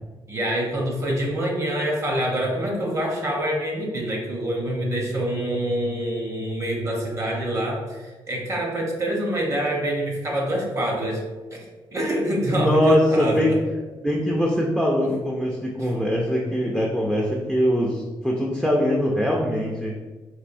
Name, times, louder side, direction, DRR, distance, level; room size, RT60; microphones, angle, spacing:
voice 1, 0.3-11.2 11.5-13.6 15.0-15.1 15.8-15.9, right 1 dB, 30° right, -1 dB, 0.9 m, -26 dB
voice 2, 12.5-13.6 14.0-20.0, equal, 5° right, -2 dB, 0.5 m, -22 dB
4.3 x 2.6 x 2.6 m, 1.3 s
cardioid pair, 95°, 9 cm